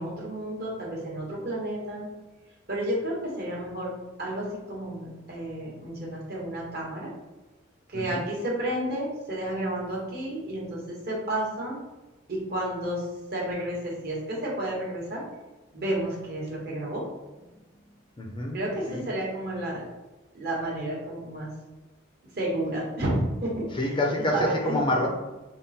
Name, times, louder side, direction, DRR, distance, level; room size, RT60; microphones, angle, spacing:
voice 1, 0.0-2.1 2.7-3.9 4.2-7.1 7.9-11.8 12.3-13.0 13.3-15.2 15.7-17.0 18.5-19.8 20.3-21.5 22.4-23.7 24.3-25.0, right 1 dB, 55° right, -3 dB, 1.1 m, -31 dB
voice 2, 7.9-8.2 18.2-18.6 18.9-19.1 23.7-25.1, left 1 dB, 25° left, 0 dB, 0.5 m, -27 dB
3.6 x 2.0 x 4.1 m, 1.1 s
head